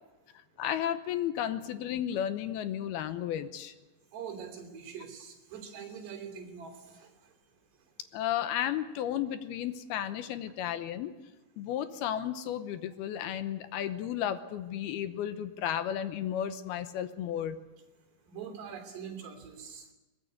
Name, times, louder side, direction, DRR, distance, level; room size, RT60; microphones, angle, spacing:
voice 1, 0.6-3.7 8.1-11.1 11.6-17.6, left 10 dB, 75° left, 11 dB, 2.7 m, -33 dB
voice 2, 4.1-7.1 18.3-19.9, right 7 dB, 70° right, 2 dB, 5.1 m, -43 dB
22.5 x 19.5 x 8.1 m, 1.1 s
omnidirectional pair, 4.9 m